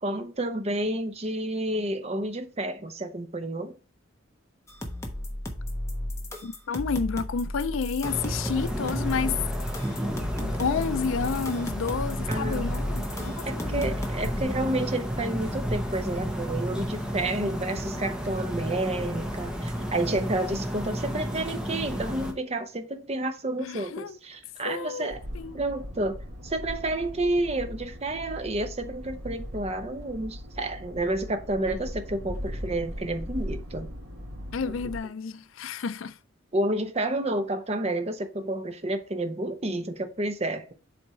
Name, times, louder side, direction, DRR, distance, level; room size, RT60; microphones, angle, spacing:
voice 1, 0.0-3.8 12.3-12.7 13.5-25.2 25.5-26.2 26.4-33.9 36.5-40.7, right 1 dB, 30° right, 0.8 m, -30 dB
sound 1, 4.7-14.4, left 1 dB, 15° left, 1.0 m, -34 dB
voice 2, 6.4-9.4 9.8-9.9 10.4-13.9 23.6-24.2 24.6-25.6 34.5-36.2, left 5 dB, 75° left, 0.4 m, -30 dB
sound 2, 8.0-22.3, equal, 5° right, 1.0 m, -32 dB
sound 3, 25.1-35.0, equal, 75° right, 2.3 m, -39 dB
7.7 x 3.5 x 4.3 m
head